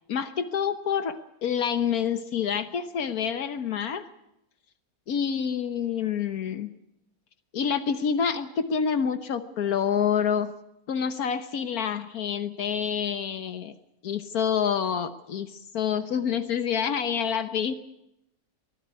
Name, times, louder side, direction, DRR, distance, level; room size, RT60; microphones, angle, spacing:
voice 1, 0.1-4.1 5.1-6.7 7.5-10.5 10.9-13.7 14.0-17.7, left 7 dB, 80° left, 10 dB, 1.5 m, -27 dB
24.0 x 15.5 x 9.4 m, 0.84 s
omnidirectional pair, 1.6 m